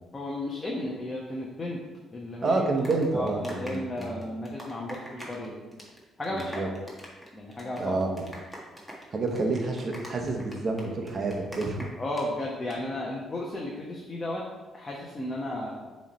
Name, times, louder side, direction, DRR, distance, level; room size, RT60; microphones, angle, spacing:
voice 1, 0.1-1.8 2.1-2.6 3.1-5.6 6.2-6.7 7.3-8.0 12.0-14.4 14.7-15.9, left 1 dB, 25° left, -3 dB, 1.0 m, -34 dB
voice 2, 2.4-4.1 6.3-6.7 7.8-8.2 9.1-11.9, right 3 dB, 45° right, 2 dB, 1.1 m, -28 dB
sound 1, 2.5-5.5 5.7-6.0 6.2-12.3 12.5-12.8, equal, ahead, 1.5 m, -43 dB
7.1 x 3.3 x 4.2 m, 1.2 s
cardioid pair, 90°, 0 cm